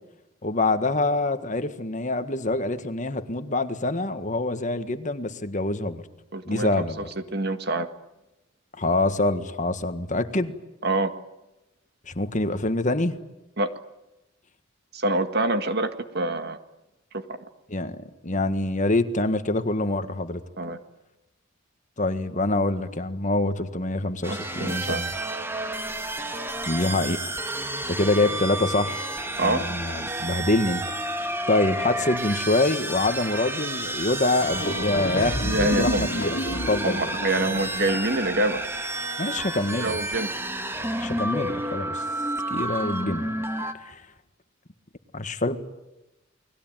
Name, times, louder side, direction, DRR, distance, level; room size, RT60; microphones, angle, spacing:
voice 1, 0.4-6.0 6.4-7.1 8.8-10.5 12.1-13.2 17.7-20.4 22.0-25.1 26.7-27.2 27.9-29.0 29.4-30.8 31.5-35.5 35.8-36.4 36.7-37.1 39.2-40.0 41.0-42.0 42.5-43.3 43.8-44.0 45.1-45.6, left 2 dB, 40° left, 10 dB, 1.6 m, -25 dB
voice 2, 6.3-6.7 7.0-7.1 7.3-7.9 10.8-11.1 13.6-13.7 14.9-16.6 17.1-17.4 20.6-20.8 24.3-25.0 29.4-29.6 35.4-36.0 36.8-38.6 39.7-40.3, right 2 dB, 55° right, 9 dB, 1.9 m, -26 dB
sound 1, 24.2-43.7, right 1 dB, 10° right, 1.9 m, -31 dB
sound 2, 34.0-34.1 34.3-38.1, left 1 dB, 65° left, 2.5 m, -30 dB
29.5 x 21.0 x 9.1 m, 0.97 s
head